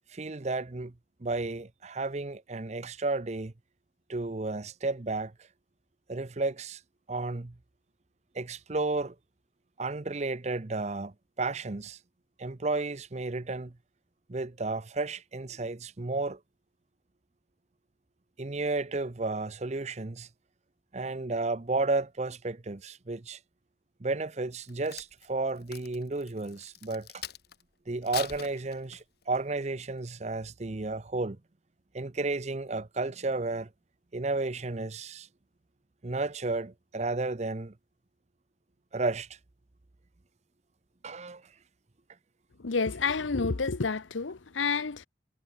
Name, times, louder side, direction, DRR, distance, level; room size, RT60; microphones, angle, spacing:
voice 1, 0.1-0.9 1.2-3.5 4.1-5.3 6.1-6.8 7.1-7.5 8.3-9.1 9.8-12.0 12.4-13.8 14.3-16.4 18.4-20.3 20.9-23.4 24.0-27.2 27.9-31.4 31.9-33.7 34.1-35.3 36.0-37.7 38.9-39.4 41.0-41.4, right 3 dB, 35° right, 0.7 m, -32 dB
Crack, 24.5-27.6 28.0-29.2 29.8-30.0, left 10 dB, 55° left, 1.1 m, -43 dB
voice 2, 42.6-45.1, left 4 dB, 85° left, 0.9 m, -29 dB
head